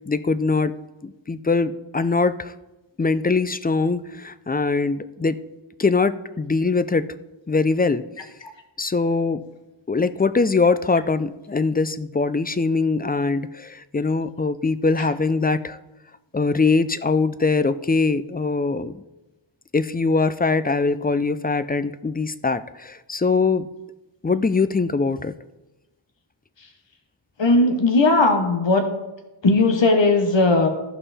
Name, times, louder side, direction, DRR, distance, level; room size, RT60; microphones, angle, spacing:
voice 1, 0.1-0.7 1.0-2.5 3.0-5.4 5.8-7.1 7.5-8.0 8.8-9.4 9.9-15.8 16.3-18.9 19.7-23.7 24.2-25.3, left 4 dB, 20° left, 14 dB, 0.3 m, -22 dB
voice 2, 27.4-28.9 29.4-30.7, left 2 dB, 65° left, 6 dB, 1.1 m, -17 dB
14.0 x 5.5 x 4.1 m, 1.0 s
wide cardioid pair, 60°, 48 cm